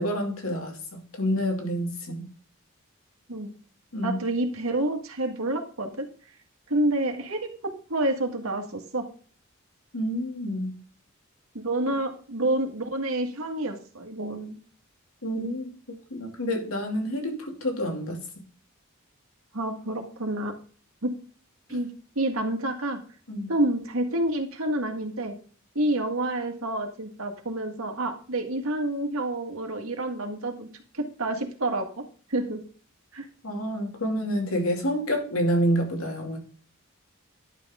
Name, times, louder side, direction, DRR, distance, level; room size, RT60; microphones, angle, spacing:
voice 1, 0.0-2.2 3.9-4.2 9.9-10.8 15.2-15.7 16.1-18.2 21.7-21.8 23.3-23.5 33.4-36.4, equal, 85° left, 2.6 m, -28 dB
voice 2, 4.0-6.1 6.7-7.5 7.9-9.0 11.5-14.6 15.3-15.5 19.5-20.5 21.0-21.1 21.7-21.9 22.2-23.0 23.5-25.3 25.8-30.7 30.9-31.9 32.3-32.6 33.1-33.3, right 1 dB, 80° right, 1.9 m, -28 dB
11.0 x 6.2 x 3.7 m
head